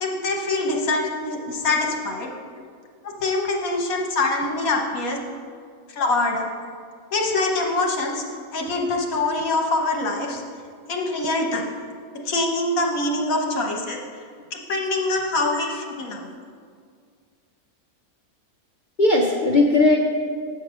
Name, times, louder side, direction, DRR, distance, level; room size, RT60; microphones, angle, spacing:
voice 1, 0.0-2.3 3.0-5.2 6.0-6.5 7.1-8.2 8.5-10.4 10.9-11.7 12.2-14.0 14.5-16.3, left 2 dB, 70° left, 1 dB, 1.5 m, -24 dB
voice 2, 0.7-1.1 2.5-2.6 13.5-13.6 15.4-15.7 19.0-20.0, left 2 dB, 45° left, -1 dB, 0.6 m, -20 dB
8.1 x 5.4 x 6.2 m, 2.1 s
omnidirectional pair, 1.5 m